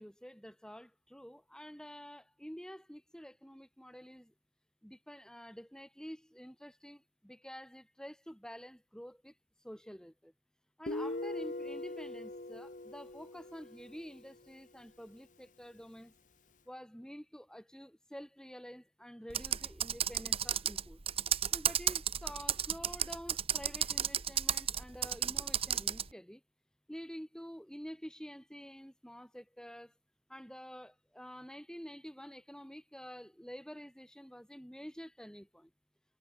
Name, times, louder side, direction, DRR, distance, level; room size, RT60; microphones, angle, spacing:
voice 1, 0.0-4.3 4.8-9.3 9.6-10.3 10.8-16.1 16.7-21.0 21.5-26.4 26.9-29.9 30.3-35.7, equal, 5° left, 4.9 m, -49 dB
Guitar, 10.9-14.4, left 2 dB, 45° left, 1.4 m, -41 dB
Computer keyboard, 19.3-26.1, right 9 dB, 35° right, 1.1 m, -33 dB
head